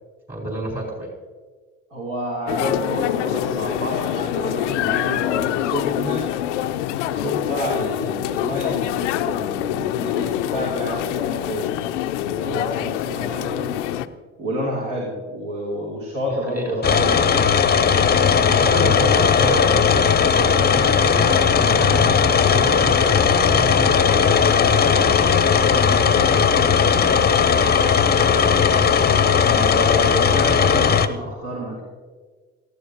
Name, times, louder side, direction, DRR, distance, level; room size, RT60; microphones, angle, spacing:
voice 1, 0.3-1.1 16.3-17.0 18.6-19.8 20.3-27.2, right 1 dB, 25° right, -1 dB, 4.8 m, -30 dB
voice 2, 1.9-6.3 7.1-13.7 14.4-17.5 18.3-19.3 29.5-31.8, equal, 60° right, -4 dB, 3.3 m, -29 dB
sound 1, 2.5-14.1, left 12 dB, 80° left, 0.6 m, -25 dB
sound 2, 16.8-31.1, left 6 dB, 25° left, 0.8 m, -17 dB
18.5 x 14.0 x 2.9 m, 1.4 s
hypercardioid pair, 60°, 36 cm